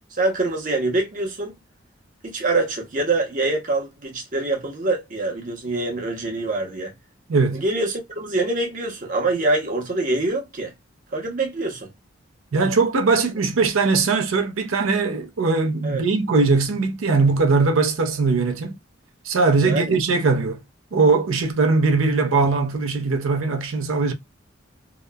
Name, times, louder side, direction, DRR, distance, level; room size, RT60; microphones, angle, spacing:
voice 1, 0.2-1.6 2.2-6.9 7.5-10.7 11.1-11.9 15.8-16.0 19.6-19.9, right 2 dB, 40° right, 0.7 m, -25 dB
voice 2, 7.3-7.6 12.5-18.8 19.2-20.6 20.9-24.1, right 4 dB, 80° right, 0.5 m, -20 dB
2.8 x 2.1 x 2.2 m
head